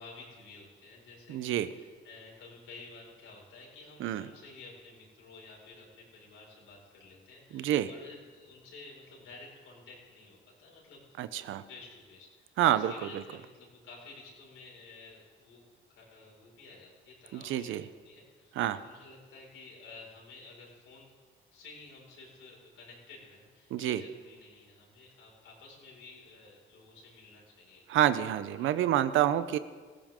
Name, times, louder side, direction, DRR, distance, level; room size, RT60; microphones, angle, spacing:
voice 1, 0.0-11.0 11.4-15.6 15.9-21.1 21.5-27.8 28.5-28.8, left 3 dB, 80° left, -2 dB, 5.3 m, -52 dB
voice 2, 1.3-1.7 4.0-4.3 7.5-7.9 11.2-11.6 12.6-13.2 17.3-17.9 18.6-18.8 23.7-24.0 27.9-29.6, right 12 dB, 85° right, 13 dB, 0.8 m, -28 dB
19.0 x 15.5 x 3.7 m, 1.5 s
cardioid pair, 90°, 20 cm